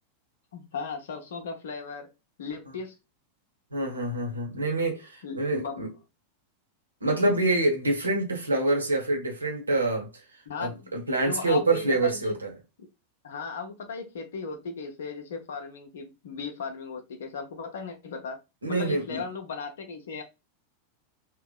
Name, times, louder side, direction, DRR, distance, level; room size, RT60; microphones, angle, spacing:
voice 1, 0.5-2.1 2.4-3.0 5.2-5.8 10.5-12.4 13.2-18.4 18.7-20.2, left 5 dB, 60° left, 0.5 m, -36 dB
voice 2, 3.7-5.9 7.0-10.2 10.6-12.5 18.6-19.3, right 2 dB, 75° right, 0.8 m, -26 dB
2.7 x 2.1 x 2.3 m
figure-of-eight pair, 90°, 0 cm